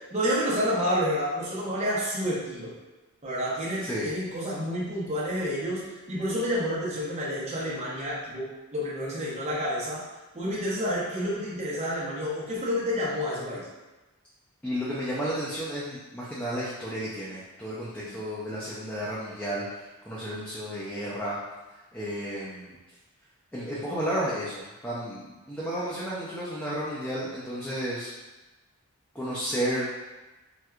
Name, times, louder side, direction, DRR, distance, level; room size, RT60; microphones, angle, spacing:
voice 1, 0.1-2.7 3.2-10.0 10.3-13.6 17.9-18.2, equal, 30° right, -7 dB, 0.9 m, -29 dB
voice 2, 14.6-21.4 21.9-22.7 23.5-28.1 29.1-29.9, equal, 5° left, -9 dB, 0.4 m, -32 dB
4.3 x 2.3 x 2.4 m, 1.1 s
head